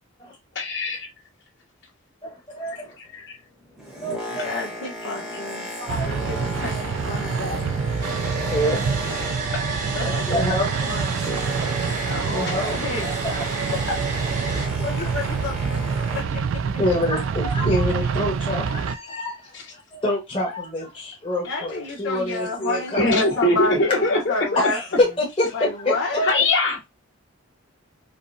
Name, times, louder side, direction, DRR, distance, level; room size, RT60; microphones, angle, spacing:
voice 1, 0.6-1.1 3.0-3.4 9.5-9.6 19.5-19.6 21.4-21.6 23.0-24.7 26.2-26.8, left 2 dB, 55° left, 1.8 m, -22 dB
voice 2, 2.2-3.0 4.0-4.6 5.8-6.3 7.5-7.6 8.3-9.5 10.0-10.9 12.1-13.8 14.5-15.1 16.7-23.4 23.9-24.2 24.6-26.2, left 1 dB, 25° left, 1.2 m, -27 dB
Boat Water vehicle, 3.6-9.7 10.0-16.5 17.1-17.2, equal, ahead, 0.9 m, -35 dB
voice 3, 4.3-5.7 6.0-7.7 9.9-10.5 10.9-11.2 12.1-12.5 12.7-13.1 14.8-16.4 21.5-24.8 25.5-26.3, left 2 dB, 70° left, 0.9 m, -30 dB
sound 1, 5.9-19.0, right 6 dB, 65° right, 0.3 m, -27 dB
Domestic sounds home sounds, 8.0-14.7, right 4 dB, 40° right, 0.9 m, -31 dB
5.0 x 2.1 x 2.6 m
head